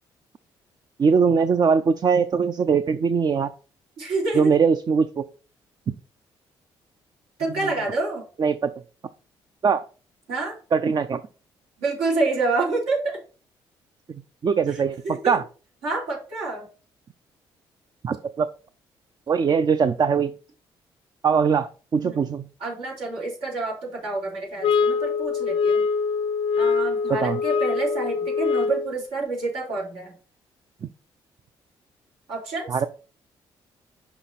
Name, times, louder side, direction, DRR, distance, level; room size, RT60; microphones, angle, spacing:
voice 1, 1.0-3.5 4.3-5.2 5.9-6.0 8.4-8.7 9.6-9.8 10.7-11.2 14.4-15.4 18.0-18.5 19.3-20.3 21.2-22.5 27.1-27.4 32.7-32.9, right 6 dB, 40° right, 10 dB, 0.5 m, -21 dB
voice 2, 4.0-4.5 7.4-8.2 10.3-10.6 11.8-13.2 15.0-15.4 15.8-16.6 22.0-22.2 22.6-25.8 26.6-30.1 32.3-32.7, right 3 dB, 85° right, -4 dB, 3.5 m, -28 dB
sound 1, 24.6-29.0, left 5 dB, 60° left, 0.5 m, -23 dB
6.0 x 5.1 x 4.1 m, 0.37 s
supercardioid pair, 70°, 10 cm